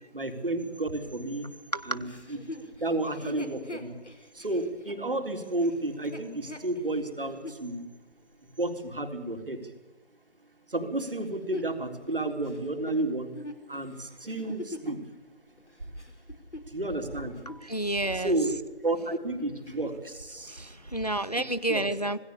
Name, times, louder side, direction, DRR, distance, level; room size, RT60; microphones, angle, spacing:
voice 1, 0.1-1.5 1.8-2.4 2.8-3.9 4.3-7.9 8.6-9.7 10.7-13.3 13.7-15.0 16.7-17.5 18.1-18.5 18.8-20.8 21.7-21.8, right 2 dB, 50° right, 5 dB, 3.7 m, -31 dB
Chuckle chortle, 2.0-7.6 8.2-8.3 11.0-15.0 15.6-17.1 17.3-17.6 18.1-18.8 19.1-19.2 19.6-20.1 20.7-20.8, left 2 dB, 75° left, 4.3 m, -43 dB
voice 2, 17.5-18.4 20.5-22.2, right 1 dB, 35° left, 15 dB, 0.7 m, -30 dB
26.5 x 21.0 x 7.1 m, 1.2 s
figure-of-eight pair, 170°, 35 cm